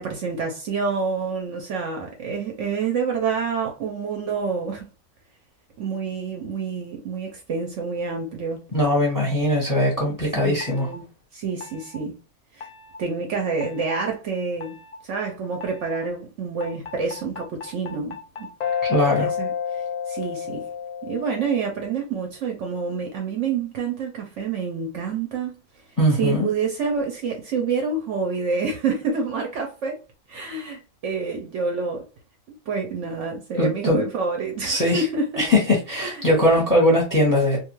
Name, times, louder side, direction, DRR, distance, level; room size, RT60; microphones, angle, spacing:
voice 1, 0.0-4.9 5.8-8.6 10.3-11.0 11.3-12.2 12.5-12.7 13.0-14.8 15.0-18.5 18.9-20.7 21.0-25.6 26.2-30.0 30.3-32.0 32.7-35.4 35.9-36.5, right 5 dB, 65° right, 0.8 m, -28 dB
voice 2, 8.7-10.9 18.8-19.3 26.0-26.5 33.6-34.0 34.6-35.1 35.4-37.6, left 1 dB, 15° left, 0.8 m, -20 dB
sound 1, 10.6-11.0 11.6-12.0 12.6-13.0 13.6-13.9 14.6-15.0 15.6-16.0 16.6-21.7, left 7 dB, 70° left, 0.9 m, -31 dB
2.5 x 2.3 x 3.0 m
omnidirectional pair, 1.5 m